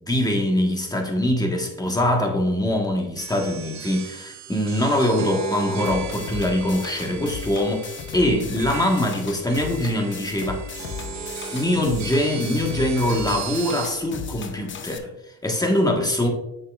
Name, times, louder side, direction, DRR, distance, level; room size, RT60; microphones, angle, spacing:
voice 1, 0.0-10.7 11.5-16.3, left 1 dB, 10° left, 1.4 m, -23 dB
sound 1, 3.2-13.9, right 6 dB, 50° right, 0.8 m, -36 dB
sound 2, 5.8-15.0, left 6 dB, 35° left, 0.7 m, -36 dB
7.4 x 5.8 x 2.4 m
supercardioid pair, 80°, 35 cm